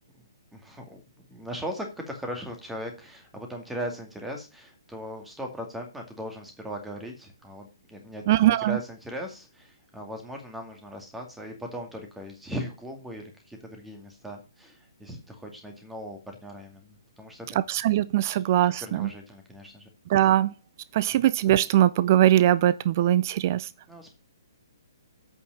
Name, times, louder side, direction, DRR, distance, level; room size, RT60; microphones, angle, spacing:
voice 1, 0.5-17.6 18.3-18.4 18.8-19.9 21.1-21.2 23.9-24.1, equal, 5° right, 2.2 m, -39 dB
voice 2, 8.3-8.8 17.6-19.1 20.1-20.5 20.9-23.7, right 13 dB, 40° right, 0.5 m, -21 dB
8.4 x 5.6 x 7.2 m
figure-of-eight pair, 135°, 2 cm